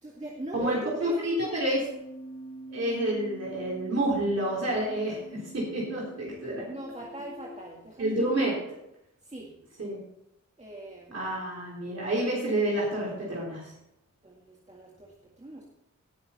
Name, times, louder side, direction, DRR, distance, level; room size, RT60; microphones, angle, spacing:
voice 1, 0.0-1.5 6.7-8.5 9.2-9.5 10.6-11.2 14.2-15.7, right 1 dB, 25° right, -2 dB, 2.0 m, -40 dB
voice 2, 0.5-1.8 2.7-6.6 8.0-8.5 9.8-10.0 11.1-13.7, right 1 dB, 55° right, -5 dB, 3.7 m, -29 dB
Keyboard (musical), 1.8-7.7, right 1 dB, 40° left, 2.9 m, -45 dB
18.0 x 7.1 x 4.2 m, 0.82 s
wide cardioid pair, 100°, 30 cm